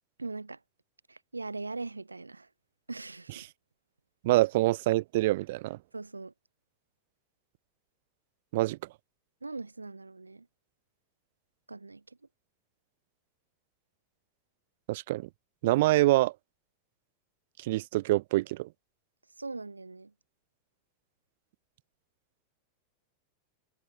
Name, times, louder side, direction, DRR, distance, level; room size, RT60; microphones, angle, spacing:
voice 1, 0.2-0.6 1.1-2.5 2.9-3.5 5.9-6.3 9.4-10.5 11.7-12.0 19.4-20.1, right 3 dB, 80° right, 1.1 m, -40 dB
voice 2, 4.2-5.8 8.5-8.8 14.9-15.3 15.6-16.3 17.6-18.7, right 18 dB, 50° right, 0.4 m, -25 dB
figure-of-eight pair, 90°, 0 cm